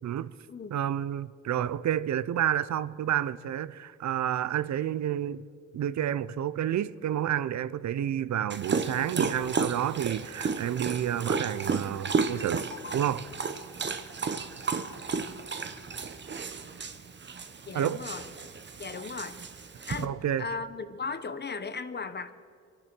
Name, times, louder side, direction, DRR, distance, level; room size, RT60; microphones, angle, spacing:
voice 1, 0.0-0.3 0.7-5.4 5.7-13.2 17.7-18.0 20.0-20.5, right 10 dB, 70° right, 0.6 m, -30 dB
Dog, 8.5-20.0, right 5 dB, 40° right, 0.9 m, -33 dB
voice 2, 17.7-18.3 18.8-19.4 19.9-22.3, left 4 dB, 35° left, 0.9 m, -37 dB
23.5 x 10.0 x 6.1 m
cardioid pair, 85°, 29 cm